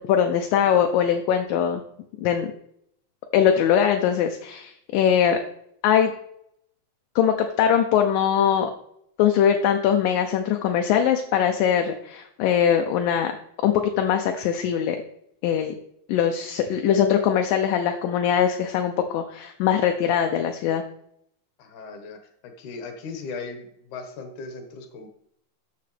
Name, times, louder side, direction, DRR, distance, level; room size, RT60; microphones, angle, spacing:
voice 1, 0.1-1.8 2.2-2.5 3.3-5.4 5.8-6.1 7.2-8.7 9.2-13.3 13.6-15.0 15.4-15.8 16.1-20.8, left 8 dB, 80° left, 5 dB, 2.3 m, -21 dB
voice 2, 21.6-22.2 22.6-25.1, left 4 dB, 65° left, 4 dB, 2.7 m, -37 dB
13.0 x 6.9 x 3.3 m, 0.73 s
omnidirectional pair, 4.2 m